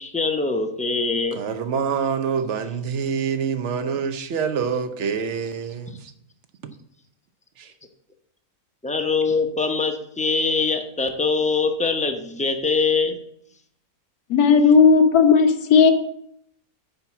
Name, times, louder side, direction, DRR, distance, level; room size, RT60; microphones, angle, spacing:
voice 1, 0.0-1.4 5.9-6.0 8.8-13.2, left 4 dB, 10° left, 5 dB, 0.4 m, -23 dB
voice 2, 1.3-6.1 7.6-7.7, right 6 dB, 55° right, 9 dB, 1.0 m, -26 dB
voice 3, 14.3-15.9, left 5 dB, 90° left, 5 dB, 1.4 m, -14 dB
9.2 x 4.4 x 7.1 m, 0.70 s
omnidirectional pair, 1.6 m